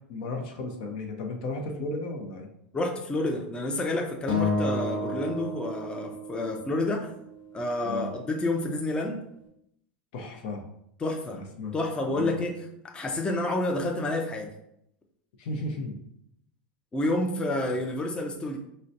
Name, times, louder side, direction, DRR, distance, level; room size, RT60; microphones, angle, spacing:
voice 1, 0.1-2.5 4.9-5.2 7.8-8.1 10.1-10.6 11.3-11.7 12.1-12.3 15.4-16.0, left 2 dB, 65° left, 3 dB, 0.6 m, -35 dB
voice 2, 2.7-7.1 7.5-9.2 11.0-11.4 11.7-14.5 16.9-18.6, left 2 dB, 15° left, 2 dB, 0.5 m, -29 dB
Acoustic guitar, 4.3-6.7, left 2 dB, 90° left, 1.0 m, -30 dB
3.9 x 2.1 x 2.6 m, 0.75 s
hypercardioid pair, 95°, 5 cm